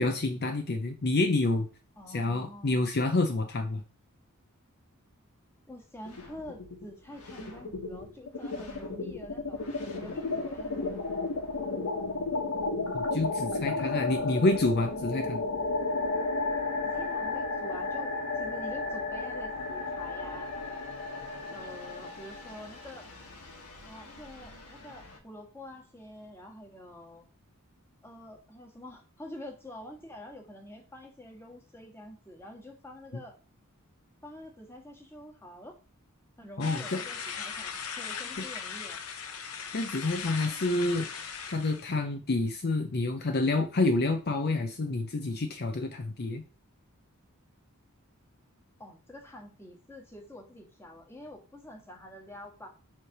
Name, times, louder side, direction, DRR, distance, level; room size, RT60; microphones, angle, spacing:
voice 1, 0.0-1.7 2.1-3.8 12.9-15.4 36.6-37.0 39.7-41.1 41.5-46.4, left 2 dB, 45° left, 6 dB, 0.6 m, -28 dB
voice 2, 2.0-2.9 5.7-9.7 9.9-10.9 16.8-20.5 21.5-23.2 23.9-27.3 28.0-33.4 34.2-35.8 36.4-39.0 48.8-52.7, left 1 dB, 10° left, 2 dB, 1.5 m, -47 dB
sound 1, 6.0-6.8 7.1-25.2, left 3 dB, 90° left, 1.6 m, -34 dB
sound 2, 36.6-41.9, left 6 dB, 70° left, 0.9 m, -38 dB
7.3 x 3.3 x 5.8 m, 0.35 s
head